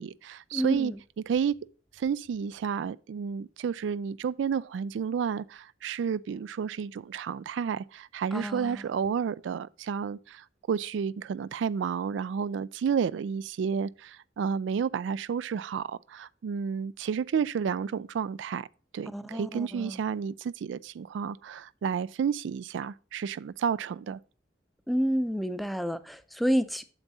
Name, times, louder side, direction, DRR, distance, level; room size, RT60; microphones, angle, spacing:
voice 1, 0.0-1.6 1.9-18.7 18.9-24.2, right 7 dB, 85° right, 0.3 m, -31 dB
voice 2, 0.5-0.9 8.3-8.8 19.1-20.0 24.9-26.8, equal, ahead, 0.5 m, -29 dB
8.9 x 7.1 x 2.7 m
head